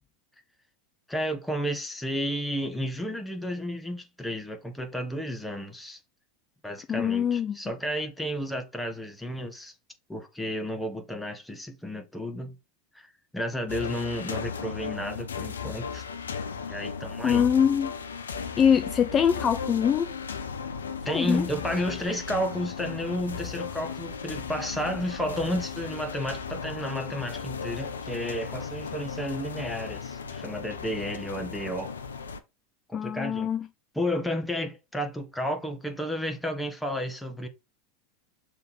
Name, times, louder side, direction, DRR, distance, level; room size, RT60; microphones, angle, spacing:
voice 1, 1.1-6.0 6.6-9.7 10.1-12.6 12.9-16.0 16.7-17.5 21.0-31.9 32.9-33.5 33.9-37.5, equal, 5° left, 1.6 m, -32 dB
voice 2, 6.9-7.6 17.2-17.9 18.6-20.1 21.1-21.5 32.9-33.7, left 8 dB, 30° left, 0.4 m, -23 dB
sound 1, 13.7-32.4, left 6 dB, 80° left, 0.8 m, -36 dB
6.6 x 3.5 x 4.4 m
hypercardioid pair, 90°, 0 cm